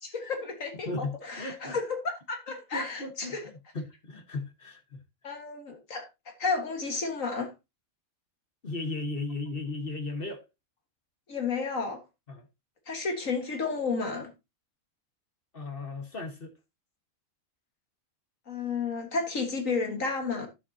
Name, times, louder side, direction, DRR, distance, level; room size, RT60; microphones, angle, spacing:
voice 1, 0.0-3.4 5.2-6.1 6.4-7.5 11.3-12.0 12.9-14.3 18.5-20.5, left 4 dB, 65° left, 2.1 m, -32 dB
voice 2, 0.8-1.8 2.7-3.4 3.7-5.0 8.6-10.4 12.3-12.5 15.5-16.5, left 3 dB, 40° left, 1.6 m, -36 dB
11.0 x 7.6 x 2.8 m
omnidirectional pair, 1.5 m